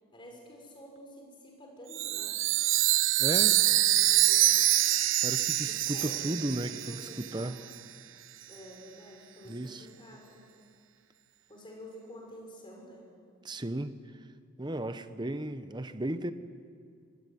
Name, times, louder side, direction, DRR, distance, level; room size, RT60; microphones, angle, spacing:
voice 1, 0.1-2.4 3.2-4.5 5.6-7.6 8.5-10.5 11.5-13.1, equal, 25° left, 0 dB, 6.0 m, -50 dB
Chime, 1.9-7.5, right 14 dB, 65° right, 0.7 m, -25 dB
voice 2, 3.2-3.6 5.2-7.6 9.5-9.9 13.4-14.0 14.6-16.3, right 1 dB, 20° right, 11 dB, 0.9 m, -35 dB
24.0 x 19.5 x 9.5 m, 2.2 s
head